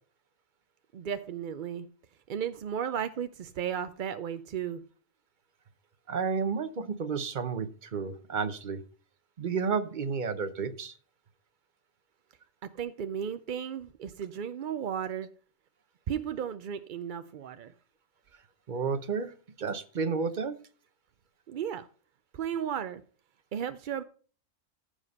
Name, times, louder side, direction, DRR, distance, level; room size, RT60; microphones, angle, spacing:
voice 1, 0.9-1.9 2.3-4.8 12.6-15.3 16.1-17.7 21.5-21.9 22.3-23.0 23.5-24.0, right 8 dB, 60° right, 11 dB, 0.5 m, -34 dB
voice 2, 6.1-8.8 9.4-11.0 18.7-20.6, right 5 dB, 40° right, 12 dB, 0.9 m, -31 dB
14.5 x 5.0 x 5.4 m, 0.41 s
omnidirectional pair, 1.4 m